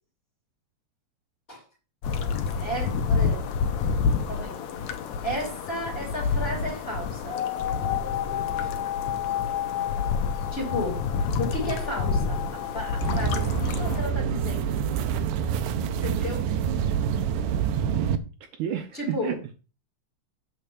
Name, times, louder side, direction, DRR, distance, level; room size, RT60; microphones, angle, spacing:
sound 1, 2.0-14.0, left 5 dB, 65° left, 2.0 m, -29 dB
voice 1, 2.5-3.4 4.3-4.8 5.2-7.4 8.6-8.7 10.5-11.0 11.4-14.8 16.0-16.4 18.9-19.4, left 1 dB, 20° left, -1 dB, 3.0 m, -33 dB
sound 2, 7.3-13.5, left 11 dB, 85° left, 1.5 m, -32 dB
sound 3, 13.0-18.2, right 8 dB, 90° right, 2.4 m, -26 dB
voice 2, 18.6-19.5, right 10 dB, 75° right, 6 dB, 2.1 m, -31 dB
8.2 x 4.4 x 7.0 m, 0.34 s
omnidirectional pair, 3.8 m